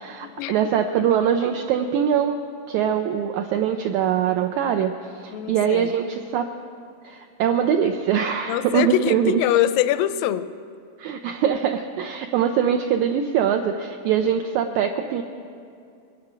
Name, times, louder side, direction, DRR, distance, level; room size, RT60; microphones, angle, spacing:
voice 1, 0.0-2.4 2.7-4.9 5.2-6.5 7.0-9.4 11.0-15.2, right 8 dB, 85° right, 5 dB, 1.7 m, -22 dB
voice 2, 5.3-5.9 8.5-10.5, left 12 dB, 85° left, 13 dB, 2.2 m, -23 dB
22.5 x 8.6 x 6.0 m, 2.4 s
omnidirectional pair, 4.0 m